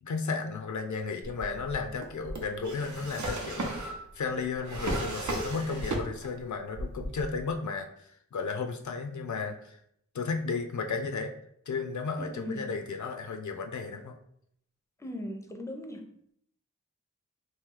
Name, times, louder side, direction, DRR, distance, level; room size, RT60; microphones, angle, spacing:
voice 1, 0.0-3.9 4.1-9.8 10.1-11.3 11.7-14.2, left 4 dB, 80° left, 5 dB, 0.5 m, -34 dB
Drawer open or close, 1.2-6.4 6.7-7.5, right 1 dB, 75° right, 0.7 m, -35 dB
voice 2, 12.2-12.6 15.0-16.1, left 1 dB, 10° left, 4 dB, 0.5 m, -38 dB
3.0 x 2.6 x 3.7 m, 0.70 s
wide cardioid pair, 60°, 29 cm